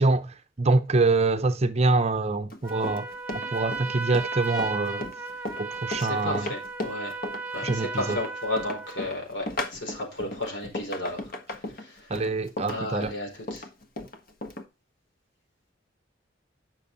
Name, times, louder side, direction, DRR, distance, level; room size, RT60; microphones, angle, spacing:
voice 1, 0.0-3.1 3.5-5.0 5.6-6.5 7.6-8.2 12.1-13.1, right 3 dB, 35° right, 0.6 m, -25 dB
Run, 2.5-14.7, left 2 dB, 45° left, 1.4 m, -36 dB
Trumpet, 2.6-9.1, right 3 dB, 5° right, 1.2 m, -35 dB
voice 2, 6.0-7.1 7.5-11.3 11.6-12.3 12.7-13.6, left 1 dB, 65° left, 4.5 m, -33 dB
9.9 x 6.2 x 4.0 m
head